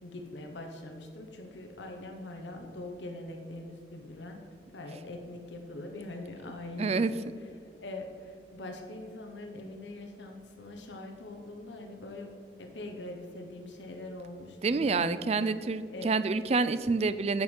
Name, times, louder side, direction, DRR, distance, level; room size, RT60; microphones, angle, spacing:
voice 1, 0.0-4.4 4.7-7.1 7.8-12.3 12.6-15.4 15.9-16.2, left 2 dB, 85° left, 3 dB, 1.0 m, -42 dB
voice 2, 6.8-7.1 14.6-17.4, right 4 dB, 35° right, 14 dB, 0.4 m, -28 dB
8.0 x 7.9 x 5.4 m, 2.2 s
head